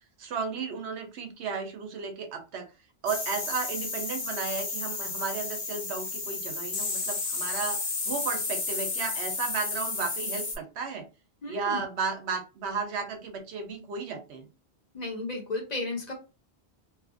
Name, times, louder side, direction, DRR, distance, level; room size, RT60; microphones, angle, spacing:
voice 1, 0.2-2.7 3.0-7.8 8.1-11.0 11.5-14.5, right 5 dB, 85° right, 5 dB, 0.9 m, -34 dB
sound 1, 3.1-10.6, left 3 dB, 70° left, 1.1 m, -32 dB
voice 2, 11.4-11.8 14.9-16.1, left 2 dB, 45° left, 1 dB, 0.7 m, -33 dB
2.7 x 2.5 x 2.4 m, 0.30 s
omnidirectional pair, 1.1 m